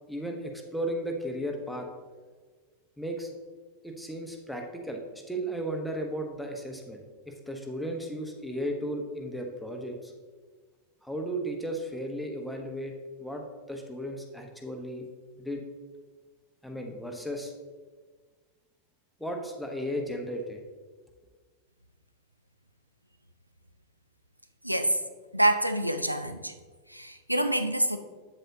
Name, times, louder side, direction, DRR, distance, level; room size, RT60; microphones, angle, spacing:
voice 1, 0.1-1.9 3.0-3.3 3.8-7.0 7.3-10.1 11.0-12.9 13.2-15.0 15.4-15.6 16.6-17.5 19.2-20.6, equal, ahead, 2 dB, 1.0 m, -35 dB
voice 2, 24.6-25.0 25.3-26.5 26.9-28.0, right 1 dB, 90° right, 8 dB, 0.4 m, -26 dB
8.0 x 7.6 x 2.7 m, 1.5 s
figure-of-eight pair, 90°, 0 cm